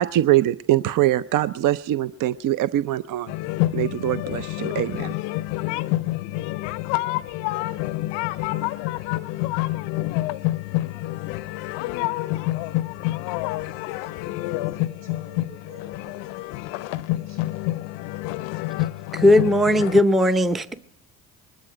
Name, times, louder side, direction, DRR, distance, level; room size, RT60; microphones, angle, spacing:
voice 1, 0.0-3.3 3.7-5.1, right 14 dB, 50° right, 0.5 m, -23 dB
sound 1, 3.3-20.0, left 17 dB, 75° left, 0.6 m, -28 dB
voice 2, 13.3-14.4 14.7-16.2 16.9-17.9, right 4 dB, 75° right, 4.2 m, -51 dB
voice 3, 19.1-20.7, left 1 dB, ahead, 0.6 m, -17 dB
21.5 x 12.0 x 5.0 m
hypercardioid pair, 60°, 43 cm